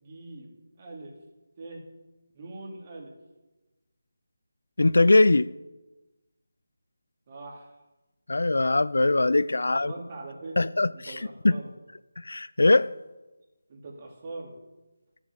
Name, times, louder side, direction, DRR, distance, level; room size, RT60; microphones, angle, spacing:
voice 1, 0.0-1.1 1.6-1.8 2.3-3.1 7.3-7.7 9.3-9.4 9.9-10.6 10.9-11.7 13.7-14.5, right 2 dB, 35° right, 2.5 m, -42 dB
voice 2, 4.8-5.5 8.3-9.9 10.6-11.5 12.2-12.9, left 2 dB, 75° left, 0.4 m, -21 dB
10.5 x 7.2 x 7.9 m
figure-of-eight pair, 160°, 0 cm